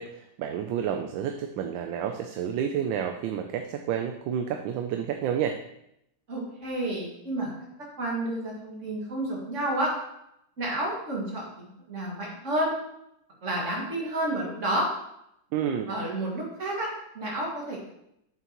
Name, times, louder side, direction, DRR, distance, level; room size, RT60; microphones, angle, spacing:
voice 1, 0.0-5.6 15.5-15.9, right 8 dB, 85° right, 5 dB, 1.4 m, -30 dB
voice 2, 6.3-7.5 8.0-9.9 10.6-12.7 13.4-14.9 15.9-16.9 17.1-17.8, right 1 dB, 40° right, -3 dB, 2.3 m, -30 dB
8.5 x 7.3 x 3.0 m, 0.79 s
omnidirectional pair, 2.1 m